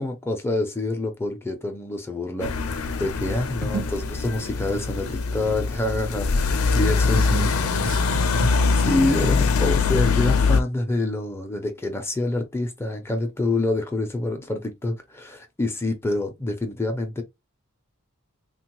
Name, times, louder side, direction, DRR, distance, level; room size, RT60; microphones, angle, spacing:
voice 1, 0.0-7.2 8.8-17.2, left 2 dB, 10° left, 0.4 m, -27 dB
sound 1, 2.4-10.6, left 4 dB, 75° left, 0.5 m, -23 dB
voice 2, 7.1-8.7 9.2-9.5, right 3 dB, 40° right, 0.6 m, -31 dB
3.2 x 2.2 x 2.9 m
head